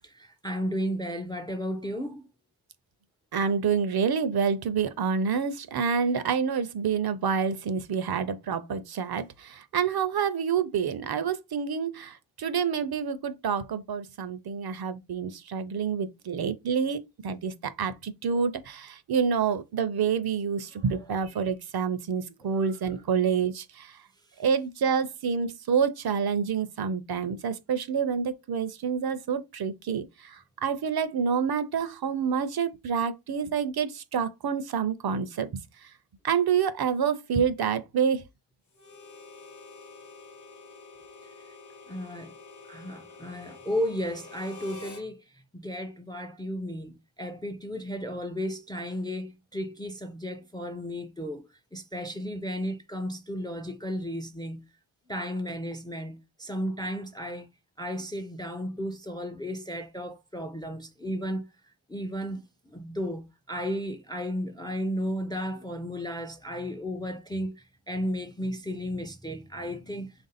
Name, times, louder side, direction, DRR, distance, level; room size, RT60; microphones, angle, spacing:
voice 1, 0.2-2.2 20.8-21.0 22.4-22.7 41.9-42.3 42.7-45.2 45.5-54.6 55.1-57.5 57.8-61.5 61.9-62.4 62.7-67.6 67.9-70.1, equal, 10° left, 0.4 m, -34 dB
voice 2, 3.3-23.9 24.4-30.4 30.6-35.6 36.2-38.2, right 6 dB, 55° right, 0.5 m, -28 dB
Harmonica, 38.7-45.1, left 4 dB, 40° left, 0.8 m, -47 dB
3.4 x 2.5 x 4.0 m
wide cardioid pair, 110°, 46 cm